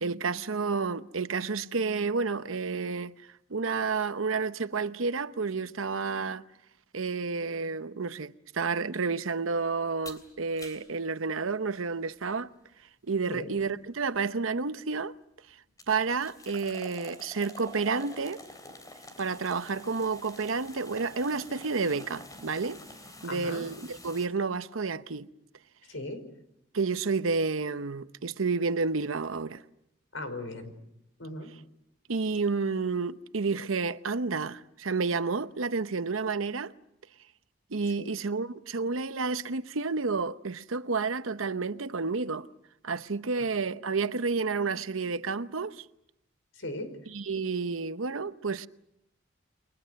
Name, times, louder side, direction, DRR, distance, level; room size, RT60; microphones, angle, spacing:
voice 1, 0.0-3.1 3.5-6.4 6.9-12.5 13.0-15.1 15.9-18.4 19.2-22.8 23.2-25.3 26.7-29.6 32.1-36.7 37.7-42.5 42.8-45.8 47.1-48.7, right 4 dB, 85° right, 0.9 m, -30 dB
sound 1, 10.0-10.3 10.6-10.9 13.6-13.7 14.1-14.2 15.8-24.3, left 2 dB, 20° left, 3.3 m, -48 dB
voice 2, 23.3-23.6 25.9-26.2 30.1-30.7 31.2-31.5 38.0-38.1 46.6-46.9, left 1 dB, 75° left, 5.1 m, -37 dB
29.5 x 23.5 x 6.5 m
head